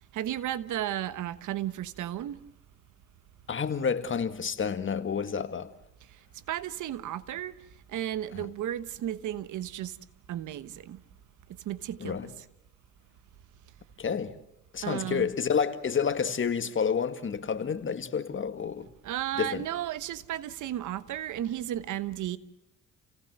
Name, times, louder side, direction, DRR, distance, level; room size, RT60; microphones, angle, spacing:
voice 1, 0.1-2.4 6.0-7.5 7.9-10.0 10.3-11.0 11.6-12.5 14.8-15.3 19.0-22.4, right 12 dB, 80° right, 1.2 m, -34 dB
voice 2, 3.5-5.7 8.3-8.5 12.0-12.3 14.0-14.4 14.7-18.9 19.4-19.6, left 6 dB, 40° left, 1.9 m, -29 dB
30.0 x 17.5 x 7.8 m
cardioid pair, 90°, 30 cm